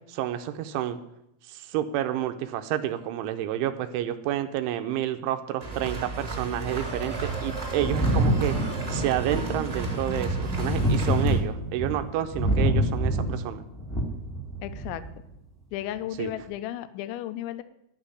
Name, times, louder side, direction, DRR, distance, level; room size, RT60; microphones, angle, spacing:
voice 1, 0.1-1.0 1.5-8.6 8.9-13.6 16.2-16.3, right 11 dB, 80° right, 8 dB, 3.1 m, -29 dB
sound 1, 5.6-11.4, right 3 dB, 20° right, 1.6 m, -32 dB
Thunder, 7.8-15.1 16.3-16.4, equal, ahead, 1.4 m, -27 dB
voice 2, 14.6-15.0 15.7-17.6, left 12 dB, 80° left, 12 dB, 2.9 m, -34 dB
13.0 x 6.3 x 9.9 m, 0.80 s
omnidirectional pair, 5.6 m